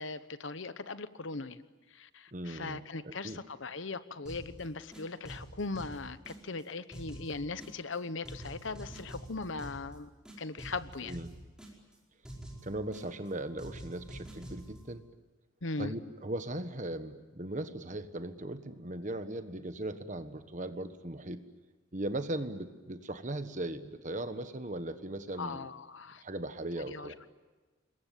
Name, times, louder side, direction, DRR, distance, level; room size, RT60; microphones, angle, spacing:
voice 1, 0.0-1.6 1.9-10.1 10.4-11.2 15.6-15.9 25.4-26.2 26.9-27.1, left 3 dB, 70° left, 13 dB, 1.1 m, -39 dB
voice 2, 2.3-3.4 11.0-11.3 12.6-15.0 15.8-21.4 21.9-25.7 26.2-27.2, right 1 dB, 40° right, 9 dB, 1.4 m, -38 dB
sound 1, 4.3-4.6 4.9-6.6 6.9-8.0 8.2-10.0 10.3-12.0 12.2-13.3 13.6-14.8, right 1 dB, 5° right, 5.1 m, -47 dB
26.5 x 22.0 x 9.3 m, 1.3 s
head